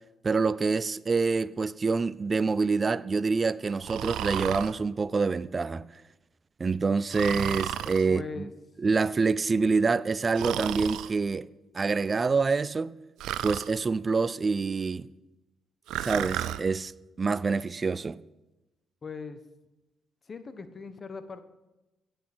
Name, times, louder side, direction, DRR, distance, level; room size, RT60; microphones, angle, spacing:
voice 1, 0.2-5.8 6.6-8.5 8.8-11.5 11.7-12.9 13.4-15.1 16.0-16.9 17.2-18.2, right 4 dB, 35° right, 0.5 m, -26 dB
Breathing, 3.8-4.7 7.1-8.1 10.3-11.1 13.2-13.7 15.9-16.6, right 12 dB, 85° right, 0.6 m, -32 dB
voice 2, 8.0-8.5 19.0-19.4 20.3-21.4, left 4 dB, 40° left, 1.3 m, -39 dB
15.5 x 8.4 x 6.2 m
cardioid pair, 90°, 0 cm